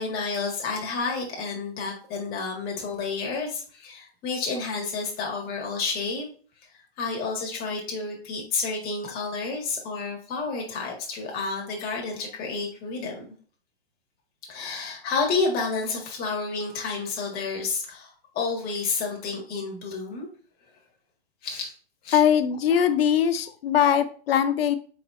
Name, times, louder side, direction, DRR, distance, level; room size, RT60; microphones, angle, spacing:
voice 1, 0.0-6.3 6.7-13.2 14.5-20.3 21.4-21.7 22.0-22.2, left 4 dB, 30° left, -1 dB, 1.7 m, -30 dB
voice 2, 22.1-24.8, left 8 dB, 65° left, 10 dB, 0.7 m, -21 dB
4.5 x 4.2 x 2.5 m, 0.41 s
hypercardioid pair, 130°, 32 cm